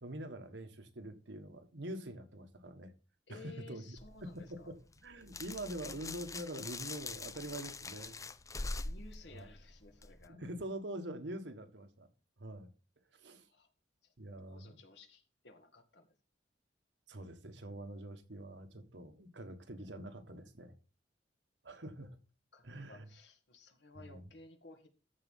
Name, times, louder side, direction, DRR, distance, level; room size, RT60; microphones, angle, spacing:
voice 1, 0.0-2.9 3.3-3.8 4.2-8.1 9.3-9.5 10.3-12.1 12.4-12.7 13.2-13.5 14.2-14.8 17.1-20.7 21.6-22.2 22.6-23.1 23.9-24.3, right 1 dB, 75° right, 1.5 m, -45 dB
voice 2, 3.3-4.7 8.8-10.4 13.5-13.7 14.0-14.1 14.5-16.1 22.5-24.9, left 2 dB, 70° left, 2.1 m, -56 dB
sound 1, 4.0-10.3, left 3 dB, 20° left, 0.5 m, -44 dB
14.0 x 5.0 x 5.6 m
head